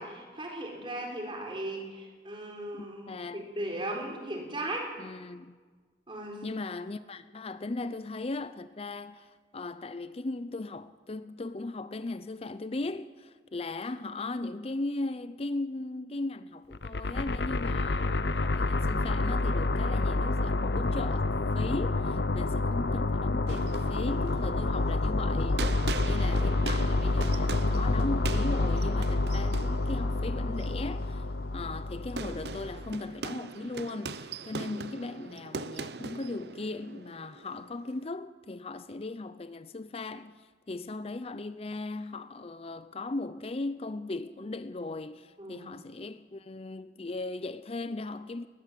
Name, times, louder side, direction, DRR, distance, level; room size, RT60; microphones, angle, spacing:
voice 1, 0.0-4.9 6.1-6.4 45.4-45.8, right 1 dB, 30° right, 4.3 m, -37 dB
voice 2, 2.7-3.5 5.0-5.6 6.4-31.2 31.5-48.5, left 2 dB, 35° left, 0.5 m, -38 dB
sound 1, 16.7-32.9, left 2 dB, 70° left, 0.8 m, -28 dB
sound 2, 18.5-19.6 24.1-26.4, right 1 dB, 80° right, 6.7 m, -56 dB
sound 3, 23.5-38.0, right 4 dB, 65° right, 0.7 m, -41 dB
21.0 x 20.0 x 7.6 m
head